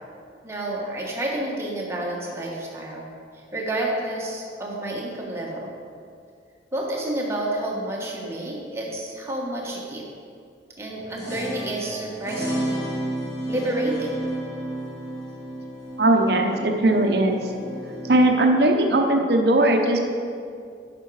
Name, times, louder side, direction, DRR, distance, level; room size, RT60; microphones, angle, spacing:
voice 1, 0.4-3.1 3.3-5.7 6.7-10.0 10.8-12.9 13.5-14.2, right 1 dB, 15° right, -3 dB, 1.4 m, -29 dB
sound 1, 10.9-18.2, right 1 dB, 15° left, 2.3 m, -32 dB
voice 2, 16.0-17.4 18.1-20.0, right 1 dB, 60° right, 3 dB, 0.8 m, -19 dB
9.2 x 6.0 x 4.8 m, 2.3 s
head